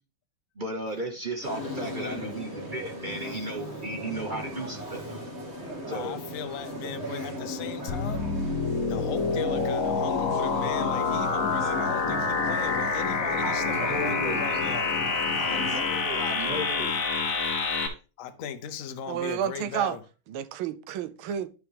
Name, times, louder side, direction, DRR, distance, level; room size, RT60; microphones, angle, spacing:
voice 1, 0.6-5.0 5.9-6.1 6.8-6.9 13.4-14.5 15.4-17.0, right 2 dB, 60° right, 0.5 m, -35 dB
sound 1, 1.4-15.8, left 1 dB, 30° right, 2.5 m, -38 dB
voice 2, 1.5-2.4 5.8-8.2 8.9-14.9 18.2-20.0, left 8 dB, 70° left, 0.7 m, -37 dB
sound 2, 7.9-17.9, left 4 dB, 50° left, 1.1 m, -27 dB
voice 3, 19.1-20.0 20.3-21.5, right 9 dB, 75° right, 1.4 m, -30 dB
10.5 x 4.9 x 3.4 m
omnidirectional pair, 2.4 m